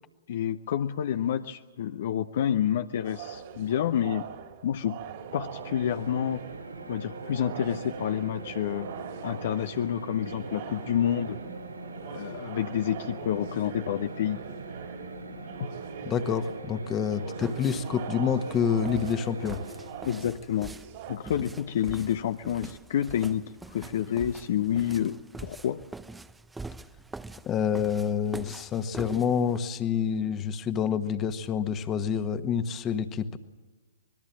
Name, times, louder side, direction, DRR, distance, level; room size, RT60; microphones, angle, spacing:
voice 1, 0.3-4.2 4.6-5.0 5.3-6.4 6.9-8.9 9.2-11.4 12.1-14.4 15.6-15.7 20.1-20.7 21.1-23.4 23.7-25.8, left 10 dB, 55° left, 9 dB, 0.8 m, -29 dB
sound 1, 3.0-21.2, right 8 dB, 45° right, 3.0 m, -43 dB
sound 2, 5.1-20.3, right 3 dB, 75° right, 7.7 m, -41 dB
voice 2, 16.0-19.6 27.4-33.4, left 7 dB, 25° left, 9 dB, 1.5 m, -28 dB
sound 3, 17.4-29.6, right 3 dB, 5° right, 0.7 m, -44 dB
26.0 x 21.0 x 7.5 m, 1.3 s
figure-of-eight pair, 115°, 0 cm